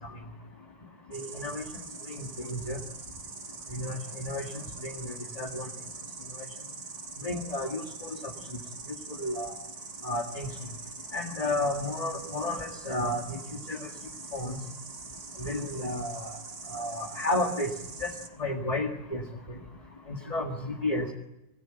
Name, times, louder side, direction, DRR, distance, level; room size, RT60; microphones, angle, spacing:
voice 1, 1.1-1.6 2.2-2.8 3.7-4.4 4.8-5.7 7.2-7.8 9.2-9.5 10.0-10.5 11.1-13.4 13.7-13.8 14.3-14.6 15.4-16.3 16.7-17.7 18.0-18.1 18.4-19.2 20.1-21.1, left 1 dB, 25° left, 2 dB, 2.1 m, -31 dB
Insect, 1.1-18.3, right 4 dB, 70° right, 2.6 m, -43 dB
27.0 x 17.5 x 9.0 m, 0.98 s
omnidirectional pair, 1.7 m